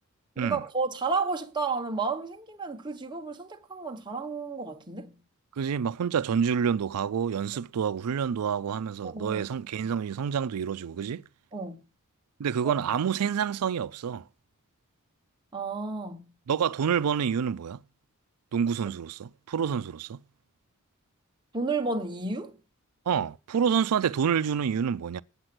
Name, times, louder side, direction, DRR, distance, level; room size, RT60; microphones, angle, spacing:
voice 1, 0.4-5.2 9.0-9.4 11.5-11.9 15.5-16.3 21.5-22.6, right 4 dB, 20° right, 1.1 m, -32 dB
voice 2, 5.6-11.2 12.4-14.2 16.5-17.8 18.5-20.2 23.1-25.2, right 7 dB, 90° right, 0.4 m, -28 dB
8.7 x 7.9 x 6.0 m
head